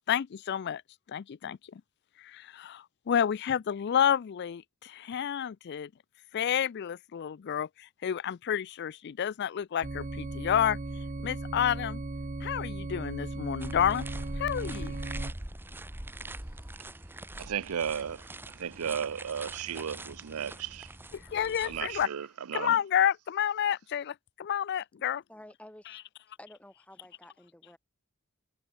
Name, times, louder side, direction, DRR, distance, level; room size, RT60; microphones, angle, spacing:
voice 1, 0.1-0.8 1.1-1.8 2.2-5.9 6.3-10.8 11.2-12.0 12.4-14.0 14.4-15.0 21.1-22.1 22.5-25.2, left 9 dB, 50° left, 0.3 m, -30 dB
sound 1, 9.8-15.3, right 2 dB, 35° right, 0.7 m, -37 dB
sound 2, 13.6-22.1, right 1 dB, 10° right, 1.0 m, -43 dB
voice 2, 17.4-18.3 18.6-20.9 21.6-22.8, right 8 dB, 85° right, 0.5 m, -34 dB
voice 3, 25.3-26.0 26.4-27.8, left 1 dB, 5° left, 2.0 m, -51 dB
head